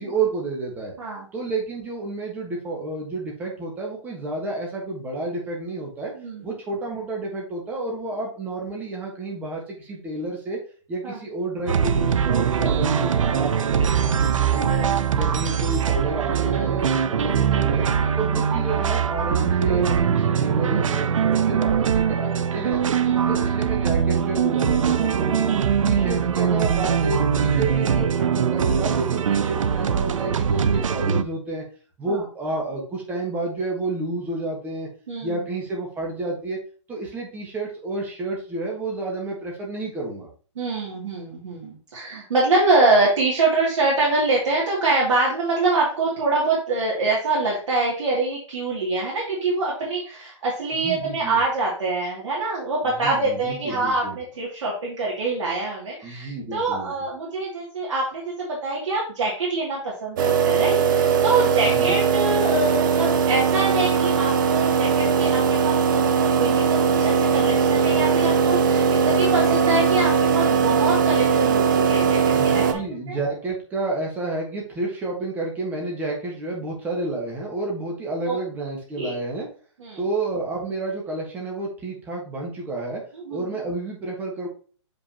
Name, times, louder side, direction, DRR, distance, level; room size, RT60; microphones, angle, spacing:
voice 1, 0.0-0.9 1.3-6.1 6.4-10.6 10.9-14.9 15.1-16.8 17.1-17.8 18.2-22.8 23.3-25.5 25.8-31.6 32.0-34.9 35.2-36.6 36.9-40.3 50.7-51.4 52.8-54.2 56.0-56.9 61.6-62.0 72.3-79.5 80.0-83.0 83.3-84.5, right 2 dB, 10° right, -1 dB, 1.4 m, -30 dB
sound 1, 11.7-31.2, right 7 dB, 85° right, 0.6 m, -22 dB
voice 2, 35.1-35.4 40.6-72.6 73.1-73.2 78.3-78.4 79.0-79.1 79.8-80.0 83.1-83.4, right 3 dB, 65° right, -5 dB, 2.5 m, -25 dB
sound 2, 60.2-72.7, right 6 dB, 40° right, 0.7 m, -20 dB
6.9 x 5.3 x 2.8 m, 0.40 s
hypercardioid pair, 165°, 16 cm